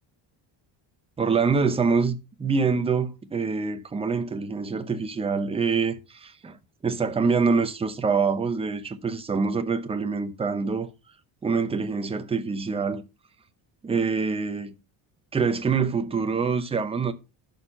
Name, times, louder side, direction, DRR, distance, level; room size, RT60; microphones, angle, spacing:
voice 1, 1.2-6.6 6.8-10.9 11.4-13.0 13.8-14.7 15.3-17.1, right 5 dB, 15° right, 0.7 m, -25 dB
11.5 x 4.4 x 5.5 m
cardioid pair, 175°, 46 cm